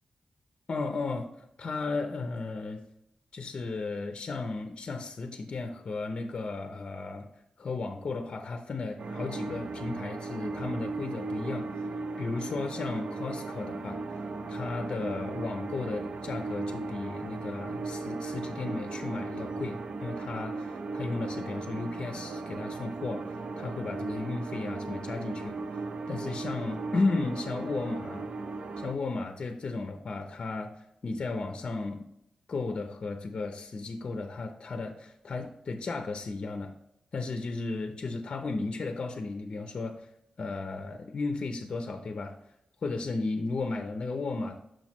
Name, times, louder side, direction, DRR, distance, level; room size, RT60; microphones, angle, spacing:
voice 1, 0.7-1.3 1.6-2.9 3.3-7.3 7.6-11.7 12.2-14.0 14.5-25.6 26.1-28.3 28.8-32.1 32.5-36.7 37.1-40.0 40.4-42.4 42.8-44.6, left 3 dB, 45° left, 6 dB, 0.6 m, -34 dB
sound 1, 9.0-28.9, right 3 dB, 55° right, 0.5 m, -37 dB
6.4 x 6.2 x 3.0 m, 0.79 s
wide cardioid pair, 140°, 2 cm